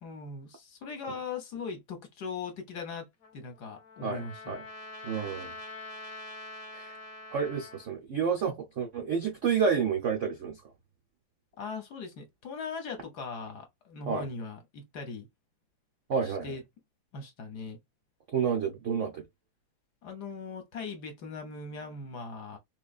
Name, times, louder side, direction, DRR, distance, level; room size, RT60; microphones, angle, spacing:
voice 1, 0.0-3.1 3.3-4.6 11.6-15.3 16.2-16.6 17.1-17.8 20.0-22.6, left 4 dB, 60° left, 1.3 m, -40 dB
Trumpet, 3.2-7.9, left 2 dB, 35° left, 1.1 m, -45 dB
voice 2, 4.0-4.6 5.0-5.5 6.7-6.9 7.3-10.6 14.1-14.3 16.1-16.5 18.3-19.2, right 6 dB, 75° right, 0.7 m, -30 dB
4.1 x 3.1 x 2.4 m
omnidirectional pair, 2.3 m